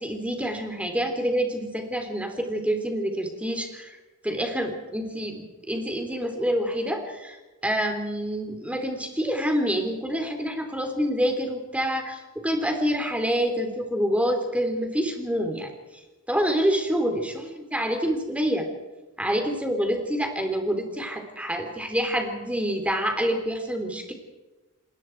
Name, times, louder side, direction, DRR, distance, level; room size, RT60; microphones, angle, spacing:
voice 1, 0.0-4.0 4.2-7.4 7.6-15.7 16.3-18.7 19.2-24.1, equal, 5° right, 5 dB, 3.3 m, -27 dB
29.0 x 20.5 x 4.6 m, 1.2 s
head